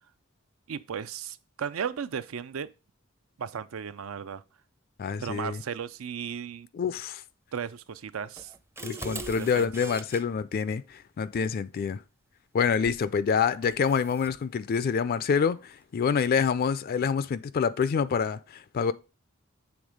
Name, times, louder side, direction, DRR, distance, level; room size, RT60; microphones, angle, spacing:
voice 1, 0.7-2.7 3.4-4.4 5.2-6.7 7.5-8.5 9.3-9.7, right 7 dB, 85° right, 0.5 m, -35 dB
voice 2, 5.0-5.6 6.7-7.2 8.8-12.0 12.5-18.9, left 6 dB, 45° left, 0.3 m, -27 dB
sound 1, 8.4-10.2 12.8-13.1 13.6-14.4, right 3 dB, 15° right, 0.5 m, -41 dB
7.2 x 3.5 x 4.9 m
head